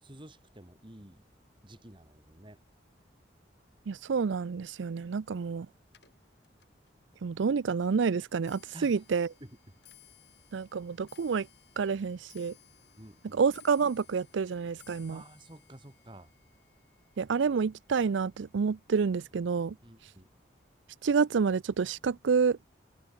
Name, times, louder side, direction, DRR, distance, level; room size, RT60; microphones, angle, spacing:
voice 1, 0.0-1.3 1.6-2.6 3.0-3.1 8.7-9.0 9.4-9.6 13.0-13.4 15.1-16.3 19.8-20.3, right 1 dB, 25° right, 2.6 m, -51 dB
voice 2, 3.9-5.7 7.2-9.3 10.5-11.5 11.8-12.5 13.3-15.2 17.2-19.8 21.0-22.6, right 5 dB, 75° right, 0.4 m, -28 dB
Clock, 5.9-19.2 19.5-20.0 20.8-20.9 21.2-21.6 21.9-22.0, left 11 dB, 60° left, 5.6 m, -61 dB
head